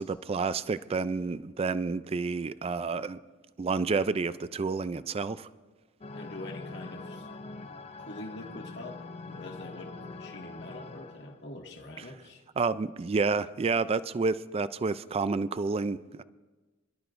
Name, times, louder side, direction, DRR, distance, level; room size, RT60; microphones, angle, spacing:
voice 1, 0.0-3.2 3.6-5.5 12.6-16.2, right 4 dB, 30° right, 0.3 m, -29 dB
sound 1, 6.0-11.4, left 3 dB, 30° left, 0.7 m, -43 dB
voice 2, 6.1-7.3 8.0-9.0 9.3-12.4, left 2 dB, 60° left, 1.8 m, -44 dB
26.0 x 12.0 x 2.6 m
head